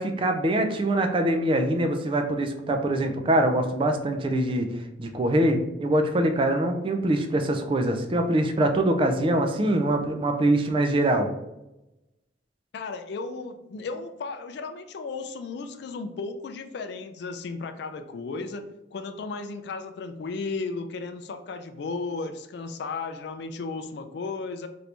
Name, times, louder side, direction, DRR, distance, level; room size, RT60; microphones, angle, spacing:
voice 1, 0.0-11.3, right 1 dB, 30° right, 6 dB, 0.3 m, -24 dB
voice 2, 12.7-24.7, left 4 dB, 65° left, 8 dB, 0.3 m, -35 dB
2.9 x 2.5 x 3.3 m, 0.94 s
head